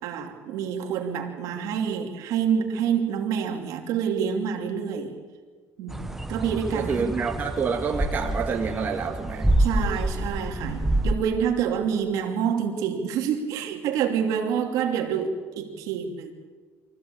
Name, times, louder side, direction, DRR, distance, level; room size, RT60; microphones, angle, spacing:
voice 1, 0.0-5.2 5.8-6.0 6.3-7.1 9.6-16.3, right 7 dB, 70° right, 2 dB, 2.8 m, -27 dB
sound 1, 5.9-11.1, right 1 dB, 5° right, 1.1 m, -27 dB
voice 2, 6.3-9.5, right 5 dB, 30° right, 1 dB, 1.9 m, -28 dB
23.5 x 15.5 x 8.7 m, 1.5 s
cardioid pair, 135°, 6 cm